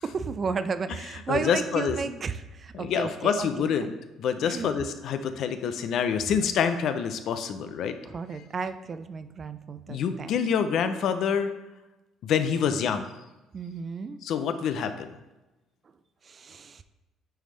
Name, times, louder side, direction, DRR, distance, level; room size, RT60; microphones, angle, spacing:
voice 1, 0.0-3.7 4.4-4.8 8.0-10.4 13.5-14.2 16.2-16.8, right 5 dB, 35° right, 12 dB, 0.4 m, -33 dB
voice 2, 1.3-2.0 2.8-3.9 4.2-7.9 9.9-11.5 12.2-13.0 14.2-15.1, left 7 dB, 65° left, 9 dB, 0.5 m, -26 dB
8.9 x 3.4 x 3.2 m, 1.0 s
cardioid pair, 100°, 0 cm